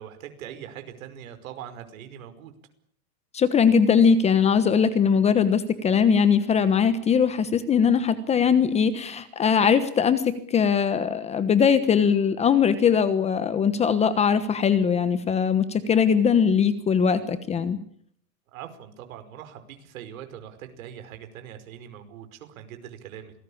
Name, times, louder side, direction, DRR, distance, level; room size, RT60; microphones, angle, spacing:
voice 1, 0.0-2.5 18.5-23.3, right 10 dB, 65° right, 9 dB, 5.3 m, -42 dB
voice 2, 3.3-17.8, left 7 dB, 15° left, 13 dB, 1.2 m, -21 dB
27.0 x 19.5 x 8.7 m, 0.64 s
supercardioid pair, 160°, 45 cm